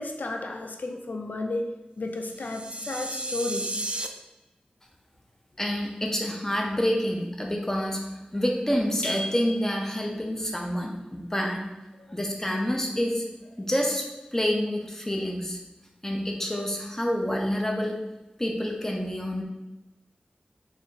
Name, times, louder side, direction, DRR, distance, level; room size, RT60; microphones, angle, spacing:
voice 1, 0.0-3.9 12.0-12.2, left 2 dB, 75° left, 4 dB, 0.4 m, -33 dB
sound 1, 2.3-4.1, right 2 dB, 40° right, 0.3 m, -33 dB
voice 2, 5.6-11.7 12.1-13.2 13.6-14.1 14.3-15.6 16.0-18.0 18.4-19.4, equal, 15° left, 1 dB, 0.6 m, -28 dB
sound 2, 9.0-10.1, left 1 dB, 45° left, 0.7 m, -35 dB
3.4 x 2.6 x 3.8 m, 1.0 s
wide cardioid pair, 75°, 3 cm